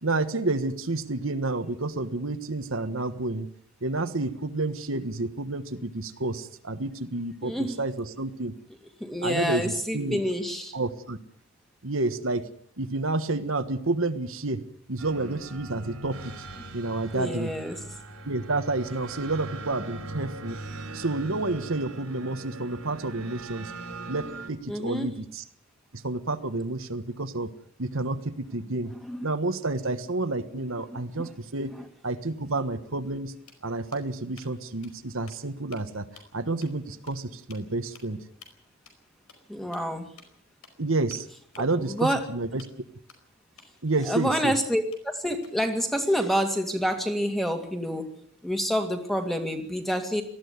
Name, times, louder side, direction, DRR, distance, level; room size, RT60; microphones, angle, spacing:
voice 1, 0.0-3.5 3.8-8.5 9.2-10.2 10.7-11.2 11.8-12.4 12.8-14.6 14.9-16.5 16.7-17.5 18.2-20.6 20.9-23.7 24.1-25.4 25.9-27.5 27.8-28.9 29.2-31.7 32.0-33.3 33.6-36.1 36.3-38.2 40.8-41.3 41.6-42.6 43.8-44.5, right 2 dB, 65° right, 9 dB, 1.4 m, -29 dB
voice 2, 7.4-7.8 9.0-10.8 17.1-17.8 24.7-25.1 28.9-29.3 30.9-31.3 31.6-31.8 39.5-40.1 41.6-42.3 44.0-48.1 48.4-50.2, equal, ahead, 5 dB, 2.2 m, -28 dB
sound 1, 15.0-24.5, right 2 dB, 85° right, 3.9 m, -40 dB
sound 2, 33.0-33.2 33.5-34.5 34.8-35.0 35.2-35.8 36.2-36.3 36.6-36.7 37.1-37.2 37.5-37.6 37.9-38.1 38.4-38.5 38.9-39.0 39.3-39.4 39.7-39.8 40.2-40.3 40.6-40.8 41.1-42.2 42.6-42.7 43.1-43.2 43.6-43.7 44.0-44.6 44.9-45.7, left 6 dB, 90° left, 4.8 m, -51 dB
19.5 x 14.0 x 9.6 m, 0.65 s
head